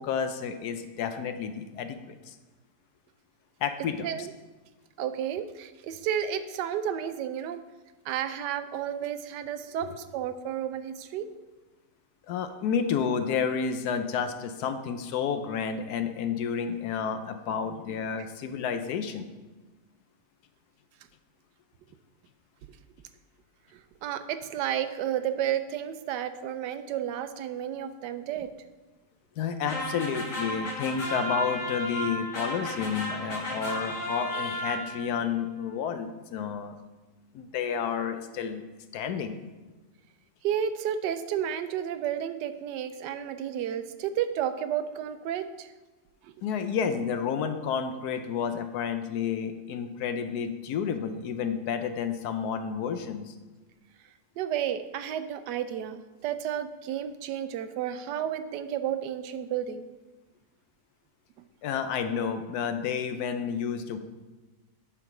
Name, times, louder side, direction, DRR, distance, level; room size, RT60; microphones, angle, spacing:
voice 1, 0.0-2.3 3.6-4.3 9.8-10.0 12.3-19.3 29.4-36.8 37.3-38.6 38.9-39.4 46.4-53.3 61.6-64.0, left 7 dB, 70° left, 8 dB, 1.1 m, -30 dB
voice 2, 4.0-4.3 5.0-7.6 8.0-11.3 23.7-28.5 40.4-45.7 46.2-46.3 54.4-59.9, right 9 dB, 85° right, 11 dB, 1.2 m, -32 dB
sound 1, 29.7-35.2, equal, 50° left, 1.5 m, -33 dB
9.8 x 3.7 x 5.9 m, 1.2 s
omnidirectional pair, 1.8 m